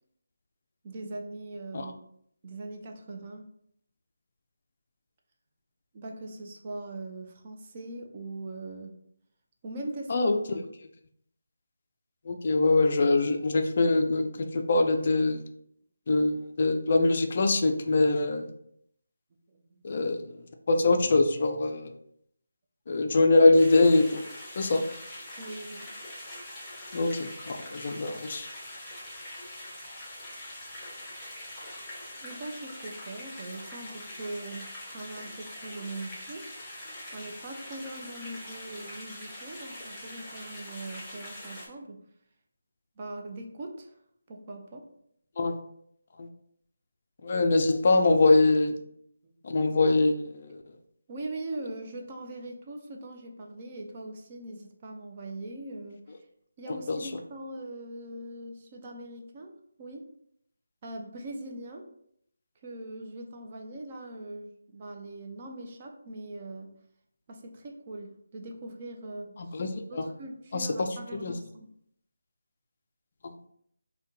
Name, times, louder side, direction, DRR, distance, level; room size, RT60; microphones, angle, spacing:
voice 1, 0.8-2.0 2.4-3.4 5.9-8.9 9.6-10.3 19.5-19.6 25.4-25.9 32.2-36.5 37.1-42.0 43.0-43.9 44.3-44.8 49.2-49.3 51.1-56.0 56.6-59.5 59.8-60.1 60.8-61.9 62.6-66.7 67.3-69.3 69.9-71.7, right 2 dB, 30° right, 2 dB, 0.5 m, -41 dB
voice 2, 10.1-10.6 12.3-15.4 16.1-18.5 19.8-20.2 20.7-21.9 22.9-24.2 24.6-24.8 26.9-28.5 45.4-45.6 46.2-46.3 47.2-48.8 49.4-50.6 56.9-57.0 69.4-70.1 70.5-70.7 71.1-71.3 73.2-73.5, left 2 dB, 45° left, 5 dB, 0.3 m, -23 dB
sound 1, 23.6-41.7, left 1 dB, 5° left, 0.9 m, -43 dB
3.5 x 2.2 x 2.6 m, 0.71 s
figure-of-eight pair, 160°, 0 cm